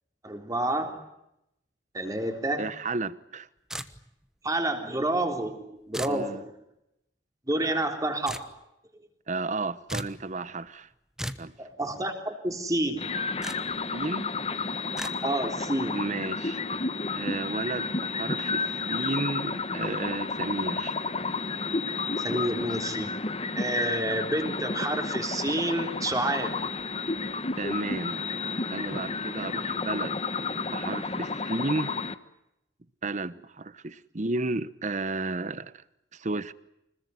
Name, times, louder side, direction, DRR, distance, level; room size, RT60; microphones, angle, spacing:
voice 1, 0.2-1.0 1.9-2.6 4.4-6.5 7.5-8.4 11.6-13.1 15.2-16.0 22.2-23.1 23.6-26.5, right 1 dB, 20° right, 4 dB, 3.5 m, -29 dB
voice 2, 2.6-3.5 6.0-6.4 7.6-7.8 9.3-10.9 11.4-11.5 13.9-14.3 15.9-16.6 17.1-20.9 27.6-28.2 28.7-30.2 30.5-32.0 33.0-35.7 36.1-36.5, right 2 dB, 40° right, 15 dB, 1.0 m, -32 dB
sound 1, 3.7-4.3 5.9-6.2 8.3-8.5 9.9-10.2 11.2-11.5 13.4-13.6 15.0-15.1, right 1 dB, 5° right, 1.1 m, -35 dB
mystery jammer, 13.0-32.1, left 3 dB, 35° left, 1.2 m, -31 dB
25.5 x 21.0 x 9.6 m, 0.84 s
head